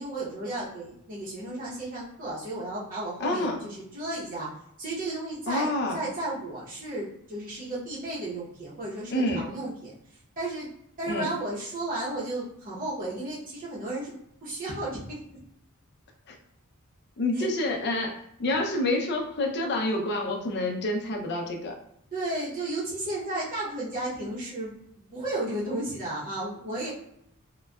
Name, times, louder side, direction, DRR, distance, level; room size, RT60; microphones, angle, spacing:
voice 1, 0.0-4.5 4.8-10.7 11.0-14.1 14.4-15.2 17.3-17.5 22.1-24.7 25.1-26.9, right 2 dB, 40° right, -8 dB, 0.8 m, -33 dB
voice 2, 3.2-3.6 5.5-6.0 9.1-9.4 11.1-11.3 16.3-16.4 17.2-21.7, left 1 dB, 50° left, 2 dB, 0.5 m, -28 dB
3.7 x 2.2 x 2.2 m, 0.74 s
head